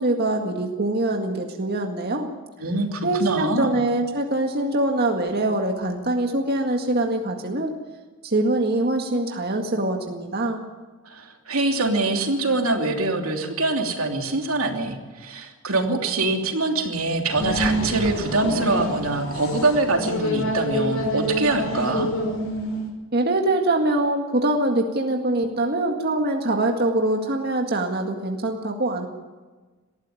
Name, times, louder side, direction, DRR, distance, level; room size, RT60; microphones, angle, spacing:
voice 1, 0.0-2.3 3.0-7.7 8.2-10.6 23.1-29.1, right 2 dB, 50° right, 2 dB, 1.9 m, -23 dB
voice 2, 2.6-3.7 11.1-22.1, right 2 dB, 85° right, 3 dB, 3.0 m, -24 dB
sound 1, 17.4-22.8, equal, 70° left, 5.4 m, -27 dB
19.5 x 14.0 x 9.6 m, 1.3 s
head